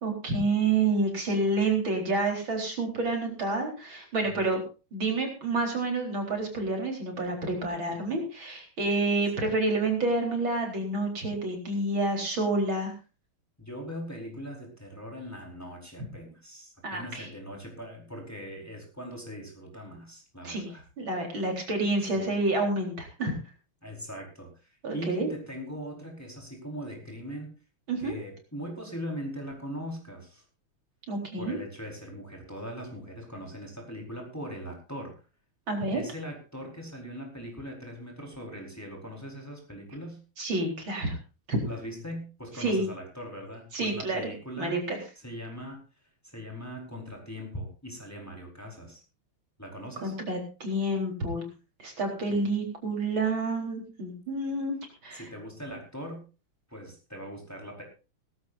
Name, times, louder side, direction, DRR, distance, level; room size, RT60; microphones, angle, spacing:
voice 1, 0.0-4.6 4.9-12.9 16.8-17.3 20.4-20.7 21.0-23.4 24.8-25.3 27.9-28.1 31.1-31.6 35.7-36.0 40.4-41.2 41.5-41.6 42.6-42.9 43.7-44.2 44.6-45.0 50.0-51.4 51.8-54.8 55.0-55.2, right 2 dB, 65° right, 2 dB, 4.9 m, -28 dB
voice 2, 13.6-20.8 22.2-22.3 23.8-27.5 28.0-30.4 31.4-35.2 35.9-40.2 41.6-44.8 45.2-45.8 46.2-49.0 49.6-50.1 52.3-52.4 55.1-56.2 56.7-57.8, equal, 5° left, 0 dB, 4.7 m, -40 dB
18.5 x 16.5 x 2.6 m, 0.32 s
omnidirectional pair, 2.3 m